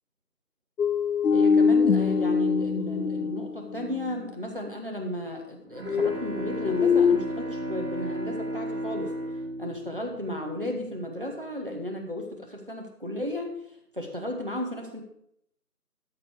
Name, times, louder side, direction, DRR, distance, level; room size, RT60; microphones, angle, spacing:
sound 1, 0.8-4.1 5.9-7.2, left 6 dB, 75° left, 0.6 m, -23 dB
voice 1, 1.3-9.1 9.6-13.6 13.9-15.0, left 1 dB, 35° right, 2 dB, 1.1 m, -34 dB
Bowed string instrument, 5.4-10.8, right 1 dB, 70° right, 2.3 m, -34 dB
12.5 x 4.7 x 4.8 m, 0.74 s
figure-of-eight pair, 180°, 47 cm